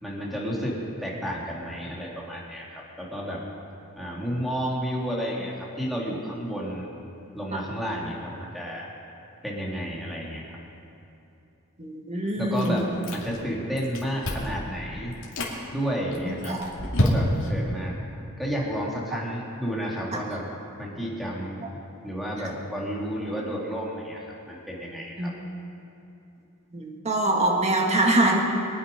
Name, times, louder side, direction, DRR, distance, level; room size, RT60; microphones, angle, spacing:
voice 1, 0.0-3.4 4.0-6.9 7.3-8.9 9.4-10.6 12.3-15.1 15.7-16.6 17.0-18.0 18.4-20.5 20.8-21.7 22.0-25.3, equal, ahead, -4 dB, 2.6 m, -31 dB
voice 2, 11.8-12.8 16.2-16.7 20.1-20.2 25.2-25.3 26.7-28.4, right 1 dB, 30° right, 0 dB, 1.9 m, -24 dB
Chewing mastication, 12.6-13.5 13.8-14.6 15.1-15.6 16.1-17.6, left 1 dB, 65° left, 2.7 m, -28 dB
24.0 x 9.5 x 5.2 m, 2.8 s
head